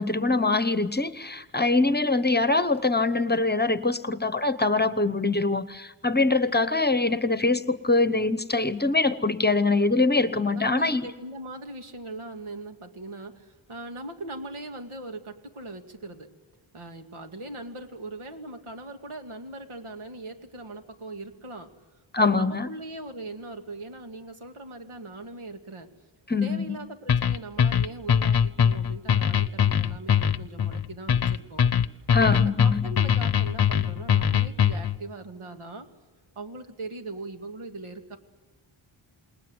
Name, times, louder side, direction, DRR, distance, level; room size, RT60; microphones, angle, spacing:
voice 1, 0.0-11.1 22.1-22.7 26.3-26.8 32.1-32.8, left 3 dB, 20° left, 14 dB, 0.9 m, -23 dB
voice 2, 10.5-16.3 16.7-21.7 22.2-25.9 26.4-31.7 32.2-35.9 36.4-38.2, right 2 dB, 80° right, 5 dB, 2.5 m, -40 dB
sound 1, 27.1-35.0, left 8 dB, 50° left, 0.8 m, -22 dB
28.0 x 20.5 x 8.0 m, 1.2 s
wide cardioid pair, 110°, 49 cm